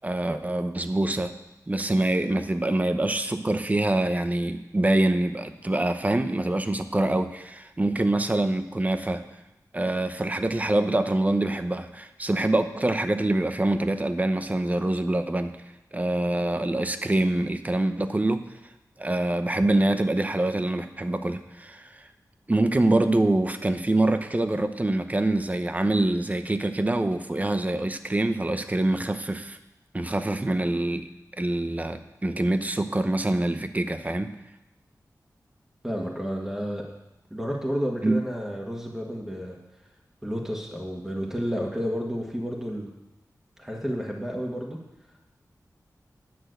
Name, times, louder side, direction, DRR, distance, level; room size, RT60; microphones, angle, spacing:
voice 1, 0.0-1.3 1.7-9.2 9.7-15.5 15.9-18.4 19.0-22.0 22.5-29.6 29.9-31.1 31.4-34.3 38.0-38.2, right 1 dB, 25° right, 9 dB, 0.8 m, -25 dB
voice 2, 35.8-36.8 37.3-39.6 40.2-42.9 43.6-44.8, equal, 5° right, -1 dB, 1.6 m, -31 dB
10.5 x 6.3 x 7.9 m, 0.93 s
wide cardioid pair, 90°, 7 cm